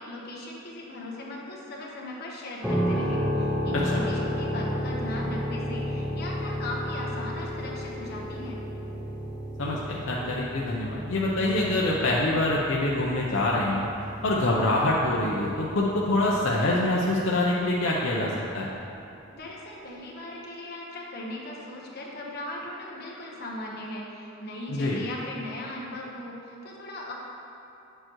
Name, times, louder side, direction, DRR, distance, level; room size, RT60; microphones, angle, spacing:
voice 1, 0.0-8.6 19.3-27.1, left 1 dB, 50° left, -3 dB, 1.1 m, -38 dB
sound 1, 2.6-17.3, equal, 5° right, 1.0 m, -32 dB
voice 2, 3.7-4.0 9.6-13.9 14.2-18.7 24.7-25.0, left 1 dB, 75° left, -4 dB, 0.7 m, -25 dB
7.6 x 6.7 x 3.0 m, 2.7 s
head